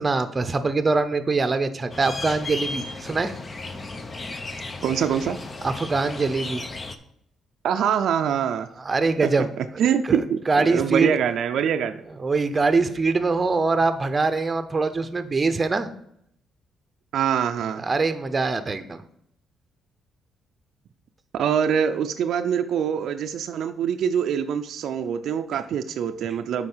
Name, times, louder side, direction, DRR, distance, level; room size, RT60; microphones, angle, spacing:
voice 1, 0.0-3.3 5.6-6.6 8.8-9.5 10.1-10.2 10.5-11.1 12.2-15.9 17.7-19.0, right 3 dB, 30° right, 10 dB, 0.7 m, -23 dB
sound 1, 1.9-7.0, left 2 dB, 30° left, 0.8 m, -35 dB
voice 2, 4.8-5.4 7.6-8.7 9.2-9.3 9.6-12.0 17.1-17.8 21.3-26.7, right 8 dB, 70° right, 8 dB, 0.4 m, -24 dB
7.7 x 4.8 x 5.5 m, 0.73 s
cardioid pair, 90°, 0 cm